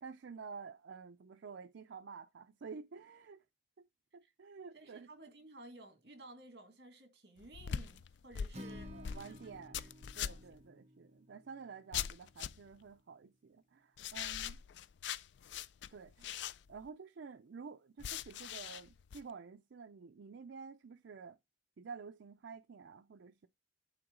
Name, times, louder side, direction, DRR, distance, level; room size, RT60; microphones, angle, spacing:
voice 1, 0.0-3.4 4.1-5.1 8.9-9.8 10.1-14.6 15.9-16.4 16.7-21.4 21.8-23.5, right 5 dB, 80° right, 0.4 m, -50 dB
voice 2, 4.7-9.9 10.3-10.4, right 2 dB, 65° right, 1.9 m, -56 dB
sound 1, 7.4-10.6 11.9-12.8 14.0-16.9 18.0-19.2, left 9 dB, 75° left, 0.4 m, -42 dB
Acoustic guitar, 8.5-12.8, left 1 dB, 35° right, 0.8 m, -54 dB
8.9 x 3.9 x 3.7 m
head